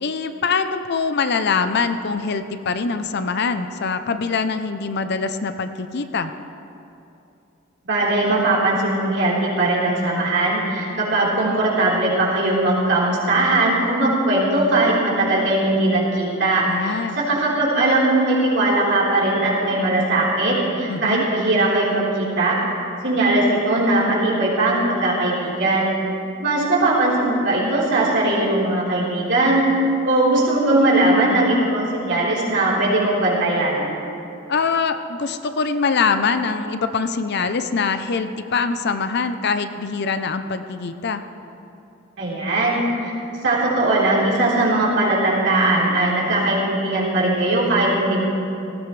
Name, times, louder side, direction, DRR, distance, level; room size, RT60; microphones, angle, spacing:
voice 1, 0.0-6.3 16.7-17.2 20.9-21.2 34.5-41.2, left 5 dB, 55° left, 9 dB, 0.6 m, -23 dB
voice 2, 7.8-22.6 23.0-25.9 26.4-29.7 30.0-33.9 42.2-43.1 43.4-48.3, right 2 dB, 65° right, -7 dB, 4.0 m, -19 dB
18.5 x 15.5 x 3.3 m, 2.7 s
head